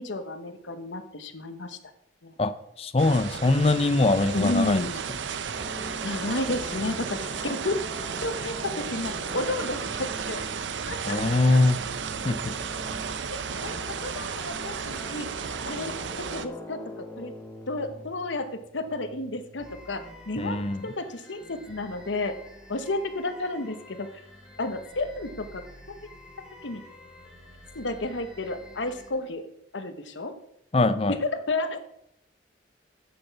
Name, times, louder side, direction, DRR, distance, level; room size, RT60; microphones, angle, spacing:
voice 1, 0.0-1.8 2.2-2.3 4.3-5.0 6.0-7.8 8.2-10.4 10.9-11.6 13.2-15.3 15.6-15.9 16.3-16.8 17.2-17.3 17.7-18.5 18.7-22.3 22.7-24.1 24.6-26.0 26.6-26.8 27.7-29.5 29.7-30.3 31.1-31.8, left 2 dB, 80° left, 9 dB, 1.0 m, -32 dB
voice 2, 2.8-4.9 11.1-11.8 12.2-12.5 20.4-20.9 30.7-31.1, left 2 dB, 30° left, 13 dB, 0.5 m, -22 dB
sound 1, 3.0-16.5, right 6 dB, 80° right, 0.6 m, -34 dB
sound 2, 5.5-22.0, left 1 dB, 15° left, 1.0 m, -44 dB
sound 3, 19.6-29.1, left 1 dB, 5° right, 1.7 m, -49 dB
7.9 x 7.5 x 5.7 m, 0.77 s
head